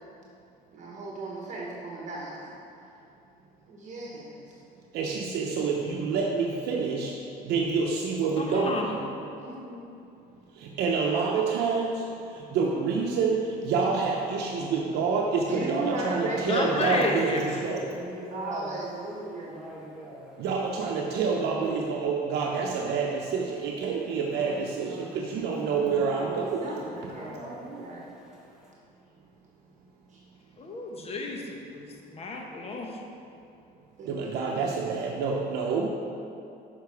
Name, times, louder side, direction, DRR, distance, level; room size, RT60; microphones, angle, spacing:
voice 1, 0.7-2.5 3.7-4.4 9.4-9.9 15.5-17.4 18.3-19.6 26.2-28.0 34.0-34.6, right 2 dB, 45° right, -3 dB, 1.3 m, -36 dB
voice 2, 4.9-7.2 7.4-8.9 10.5-17.9 20.4-26.8 34.0-35.9, right 5 dB, 75° right, -1 dB, 0.7 m, -27 dB
voice 3, 8.4-9.2 16.5-17.4 30.6-33.0, left 2 dB, 35° left, 1 dB, 1.0 m, -31 dB
voice 4, 15.8-17.2 17.8-18.8 19.1-20.4 24.2-28.7, equal, 5° right, -6 dB, 1.7 m, -43 dB
6.6 x 5.9 x 4.6 m, 2.6 s
cardioid pair, 110°, 17 cm